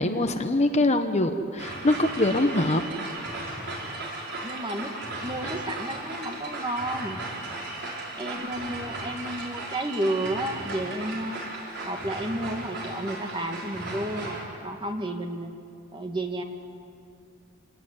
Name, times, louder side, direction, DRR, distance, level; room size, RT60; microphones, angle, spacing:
voice 1, 0.0-2.8 5.4-5.5, left 1 dB, 30° left, 7 dB, 1.1 m, -23 dB
sound 1, 1.6-14.4, right 2 dB, 50° right, 5.4 m, -36 dB
voice 2, 4.4-4.9 5.2-7.2 8.2-11.4 11.8-15.5 15.9-16.4, right 1 dB, 25° right, 4 dB, 1.9 m, -31 dB
27.0 x 18.5 x 9.7 m, 2.5 s
head